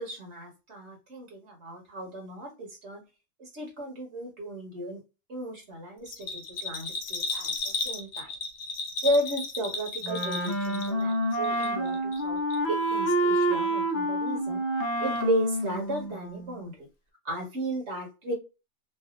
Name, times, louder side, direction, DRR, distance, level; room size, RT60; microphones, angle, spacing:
voice 1, 0.0-3.0 3.4-5.0 5.3-8.3 9.0-12.4 12.7-14.6 15.0-16.9 17.2-18.3, right 1 dB, 55° right, 1 dB, 1.3 m, -34 dB
Bell, 6.1-11.2 11.4-12.2 12.5-12.6, left 3 dB, 70° left, 1.1 m, -34 dB
Wind instrument woodwind instrument, 10.0-16.6, right 1 dB, 50° left, 0.4 m, -28 dB
3.3 x 2.4 x 2.4 m, 0.28 s
omnidirectional pair, 1.5 m